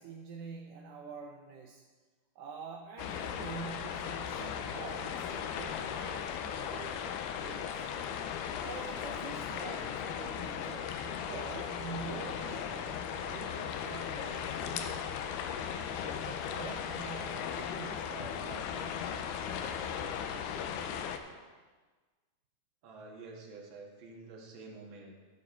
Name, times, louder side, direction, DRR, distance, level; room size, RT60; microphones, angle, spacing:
voice 1, 0.0-1.8 2.4-7.9 8.6-15.3 16.0-20.7, right 5 dB, 85° right, 1 dB, 1.8 m, -47 dB
sound 1, 3.0-21.2, left 8 dB, 90° left, 2.6 m, -37 dB
voice 2, 22.8-25.1, right 3 dB, 55° right, -1 dB, 1.3 m, -48 dB
13.5 x 7.7 x 3.7 m, 1.4 s
omnidirectional pair, 4.5 m